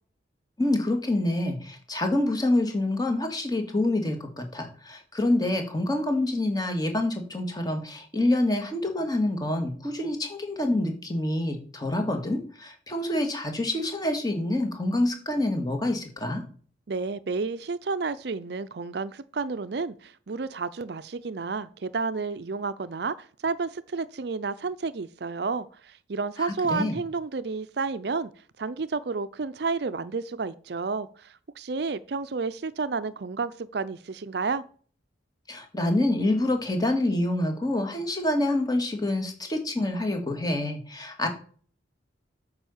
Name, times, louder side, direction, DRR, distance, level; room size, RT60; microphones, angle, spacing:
voice 1, 0.6-16.4 26.4-27.0 35.5-41.3, left 1 dB, 20° left, 1.9 m, -27 dB
voice 2, 16.9-28.3 28.6-34.6, right 4 dB, 55° right, 0.5 m, -31 dB
9.0 x 5.5 x 7.2 m
head